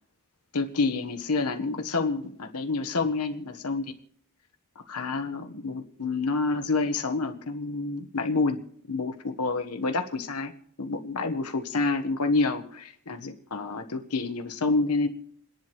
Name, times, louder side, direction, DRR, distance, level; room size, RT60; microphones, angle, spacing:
voice 1, 0.5-3.8 4.9-8.6 8.9-10.5 10.8-15.1, left 3 dB, 85° left, 6 dB, 1.2 m, -28 dB
28.5 x 10.5 x 3.1 m, 0.68 s
head